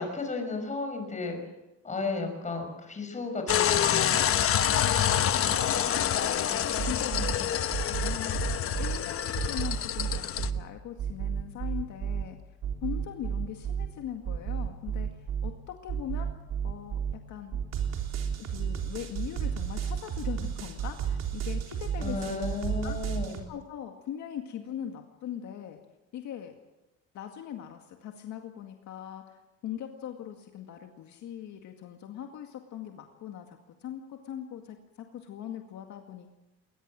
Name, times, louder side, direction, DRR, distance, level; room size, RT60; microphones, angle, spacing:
voice 1, 0.0-1.4 1.8-4.3 6.7-7.4 22.0-23.4, left 3 dB, 25° left, 4 dB, 5.9 m, -34 dB
sound 1, 3.5-10.5, left 10 dB, 45° left, 1.0 m, -27 dB
voice 2, 4.6-7.1 7.6-12.4 12.8-16.3 16.6-17.6 18.4-22.4 22.8-23.0 23.5-25.8 26.1-26.5 27.1-36.3, left 10 dB, 70° left, 4 dB, 2.1 m, -41 dB
sound 2, 6.8-7.3 7.7-9.0 9.3-10.6 11.0-12.2 12.6-13.9 14.2-15.5 15.9-17.1 17.5-23.4, right 8 dB, 60° right, 3.8 m, -32 dB
21.0 x 20.0 x 7.5 m, 1.0 s
cardioid pair, 130°, 30 cm